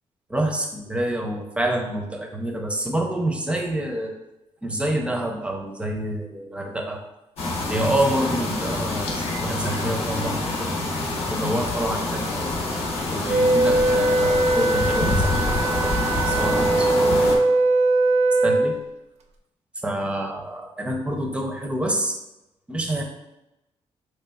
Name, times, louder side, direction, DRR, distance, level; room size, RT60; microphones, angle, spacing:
voice 1, 0.3-4.2 4.6-7.0 7.7-10.8 11.3-12.6 13.1-17.5 18.4-18.8 19.8-22.2 22.7-23.0, right 1 dB, 10° right, 3 dB, 0.5 m, -27 dB
sound 1, 7.4-17.4, left 2 dB, 70° left, 0.8 m, -26 dB
Wind instrument woodwind instrument, 13.3-18.8, right 2 dB, 80° right, 0.4 m, -20 dB
4.1 x 3.2 x 2.3 m, 0.93 s
cardioid pair, 140°, 11 cm